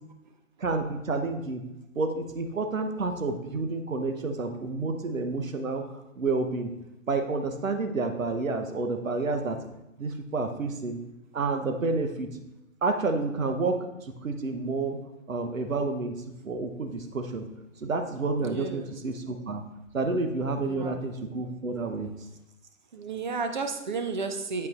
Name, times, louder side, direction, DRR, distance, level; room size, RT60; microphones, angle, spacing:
voice 1, 0.6-1.6 2.0-6.7 7.1-9.6 10.0-11.0 11.3-12.3 12.8-13.8 14.1-15.0 15.3-16.1 16.4-17.4 17.8-19.6 19.9-22.1, right 3 dB, 75° right, 6 dB, 1.1 m, -29 dB
voice 2, 18.4-18.9 20.7-21.0 22.9-24.7, right 4 dB, 35° right, 6 dB, 0.6 m, -32 dB
8.4 x 8.3 x 2.5 m, 0.90 s
figure-of-eight pair, 125°, 40 cm